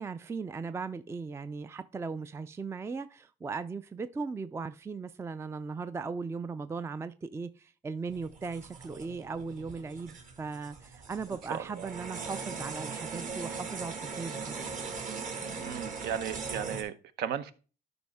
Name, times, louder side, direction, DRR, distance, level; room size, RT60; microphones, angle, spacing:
voice 1, 0.0-14.5, right 4 dB, 15° right, 0.4 m, -38 dB
sound 1, 8.1-16.8, right 5 dB, 50° right, 2.1 m, -40 dB
voice 2, 11.5-11.9 15.6-17.5, right 9 dB, 75° right, 0.8 m, -36 dB
12.0 x 5.4 x 3.5 m
cardioid pair, 110°, 17 cm